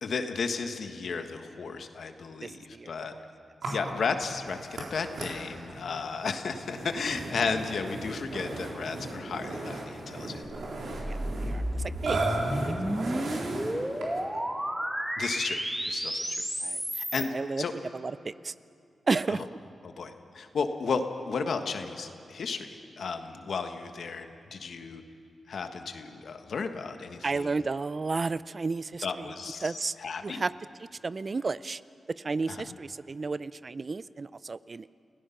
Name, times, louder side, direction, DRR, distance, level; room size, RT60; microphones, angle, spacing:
voice 1, 0.0-3.1 3.7-10.4 15.2-15.6 15.9-16.2 16.9-17.3 17.6-17.7 19.3-19.4 19.8-25.0 25.5-27.6 29.0-29.7 30.0-30.4 32.5-32.7, left 5 dB, 70° left, 7 dB, 1.4 m, -34 dB
voice 2, 2.4-3.2 3.7-3.8 11.1-12.2 12.7-13.4 13.8-13.9 14.3-14.4 16.6-16.8 17.2-17.6 17.9-18.5 19.1-19.5 27.2-29.3 29.6-29.9 30.2-30.5 31.0-31.8 32.2-34.9, right 4 dB, 40° right, 17 dB, 0.4 m, -33 dB
Burping eructation, 3.6-14.3, right 2 dB, 80° right, 3.9 m, -36 dB
sound 1, 10.5-17.3, equal, 10° right, 2.2 m, -32 dB
29.0 x 17.0 x 5.8 m, 2.5 s
cardioid pair, 80°, 0 cm